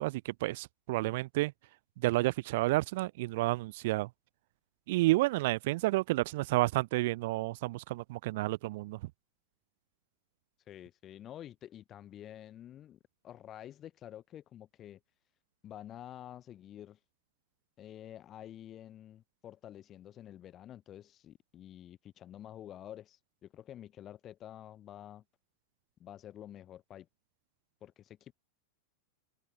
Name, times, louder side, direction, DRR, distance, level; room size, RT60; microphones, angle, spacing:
voice 1, 0.0-1.5 2.0-4.1 4.9-9.0, right 19 dB, 50° right, 0.4 m, -30 dB
voice 2, 10.7-13.0 13.2-15.0 15.6-17.0 17.8-25.2 26.0-27.1 27.8-28.3, left 11 dB, 30° left, 4.6 m, -49 dB
figure-of-eight pair, 90°, 0 cm